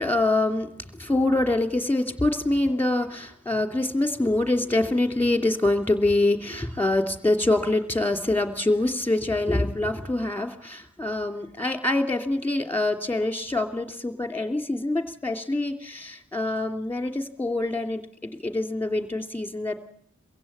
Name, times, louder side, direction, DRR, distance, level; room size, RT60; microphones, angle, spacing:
voice 1, 0.0-19.7, left 2 dB, 5° left, 6 dB, 2.8 m, -25 dB
23.0 x 16.0 x 8.7 m, 0.71 s
wide cardioid pair, 60°, 30 cm